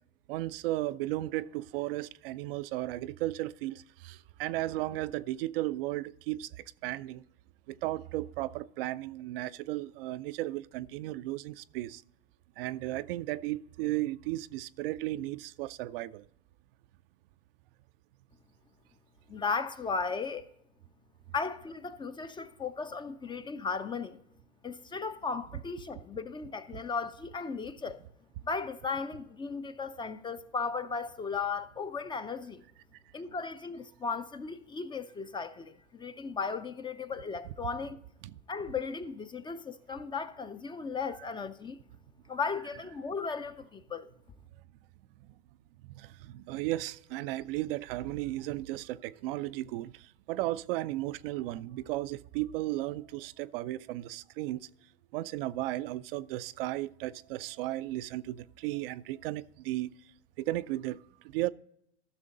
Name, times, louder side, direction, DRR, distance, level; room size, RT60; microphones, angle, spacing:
voice 1, 0.3-6.5 6.8-7.2 7.7-12.0 12.6-16.2 38.2-38.3 46.0-54.7 55.1-59.9 60.4-61.0 61.3-61.5, right 16 dB, 55° right, 0.4 m, -35 dB
voice 2, 19.3-20.5 21.3-24.2 24.6-28.0 28.4-32.6 33.1-38.0 38.5-41.8 42.3-44.1, left 5 dB, 15° left, 0.4 m, -36 dB
14.0 x 6.3 x 3.8 m
hypercardioid pair, 90°, 34 cm